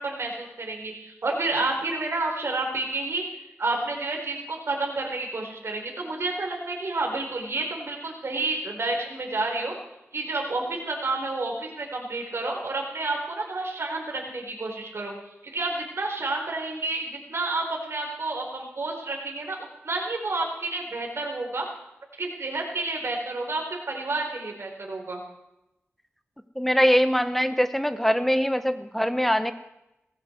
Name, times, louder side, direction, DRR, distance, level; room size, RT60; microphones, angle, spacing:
voice 1, 0.0-3.2 3.6-9.8 10.1-15.1 15.4-21.7 22.2-25.2, right 2 dB, 70° right, 1 dB, 4.4 m, -30 dB
voice 2, 26.6-29.5, equal, 5° left, 10 dB, 1.2 m, -22 dB
19.0 x 16.0 x 4.7 m, 0.91 s
wide cardioid pair, 65°, 5 cm